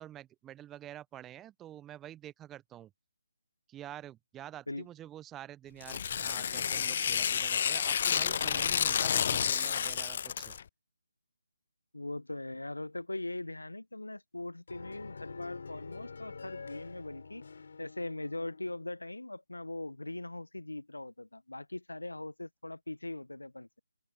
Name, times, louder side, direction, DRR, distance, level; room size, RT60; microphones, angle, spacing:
voice 1, 0.0-2.9 3.7-10.5, right 12 dB, 10° right, 0.5 m, -48 dB
Tearing, 5.8-10.6, left 8 dB, 40° left, 0.3 m, -30 dB
voice 2, 11.9-17.4 17.8-23.7, left 2 dB, 80° left, 0.8 m, -40 dB
sound 1, 14.7-18.8, left 5 dB, 55° left, 3.5 m, -47 dB
open air
figure-of-eight pair, 150°, 0 cm